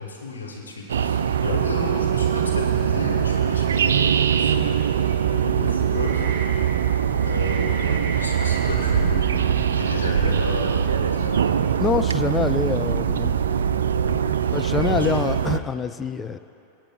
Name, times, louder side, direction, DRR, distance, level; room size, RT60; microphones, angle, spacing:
voice 1, 0.0-6.4 7.2-12.0 14.0-15.2, left 3 dB, 75° left, -1 dB, 1.4 m, -33 dB
sound 1, 0.9-15.6, right 8 dB, 65° right, 0.3 m, -22 dB
sound 2, 4.8-10.1, right 9 dB, 30° right, 1.9 m, -31 dB
voice 2, 11.8-13.3 14.5-16.4, left 5 dB, 15° left, 11 dB, 0.3 m, -25 dB
23.5 x 8.7 x 2.3 m, 2.8 s
figure-of-eight pair, 90°, 0 cm